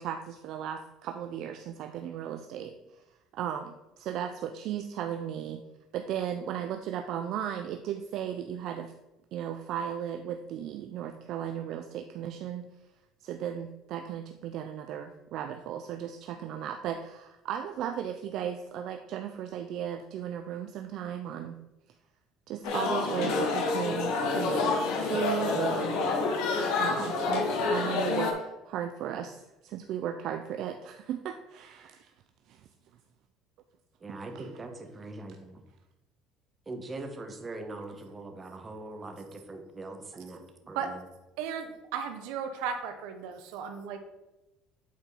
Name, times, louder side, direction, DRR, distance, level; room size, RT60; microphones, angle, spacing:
voice 1, 0.0-2.8 3.3-5.6 5.9-8.9 9.3-12.6 13.2-21.6 22.5-25.9 26.8-32.1 32.5-32.6 34.3-34.5, right 9 dB, 65° right, 6 dB, 0.4 m, -36 dB
sound 1, 22.6-28.3, left 3 dB, 75° left, 1.3 m, -28 dB
voice 2, 34.0-35.6 36.7-41.0, right 2 dB, 25° right, 5 dB, 1.2 m, -42 dB
voice 3, 41.4-44.0, right 7 dB, 80° right, 7 dB, 0.8 m, -35 dB
8.4 x 4.4 x 4.1 m, 0.98 s
supercardioid pair, 100°, 0 cm